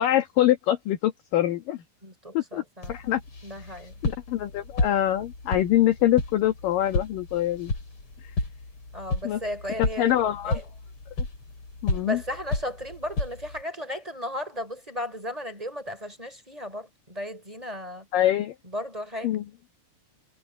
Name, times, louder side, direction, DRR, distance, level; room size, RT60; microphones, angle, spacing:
voice 1, 0.0-1.8 2.3-2.6 2.9-3.2 3.6-3.7 4.0-7.7 8.2-8.3 9.2-9.4 9.8-10.6 11.8-12.2 18.1-18.5 19.2-19.5, left 13 dB, 60° left, 2.6 m, -24 dB
voice 2, 2.0-2.9 3.4-3.9 8.9-10.1 10.4-10.6 12.0-18.1 18.7-19.3, equal, 10° right, 4.2 m, -35 dB
sound 1, 2.8-13.6, left 3 dB, 30° left, 6.0 m, -32 dB
omnidirectional pair, 5.3 m